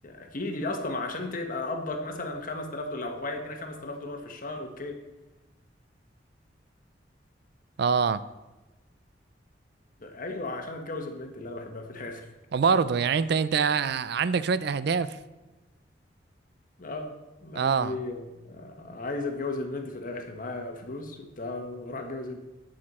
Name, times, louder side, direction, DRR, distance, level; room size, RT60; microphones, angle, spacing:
voice 1, 0.0-5.0 10.0-12.3 16.8-17.1 17.4-22.4, left 2 dB, 50° left, 4 dB, 1.3 m, -35 dB
voice 2, 7.8-8.2 12.5-15.2 17.5-17.9, right 6 dB, 65° right, 15 dB, 0.4 m, -24 dB
17.5 x 6.5 x 4.2 m, 1.1 s
head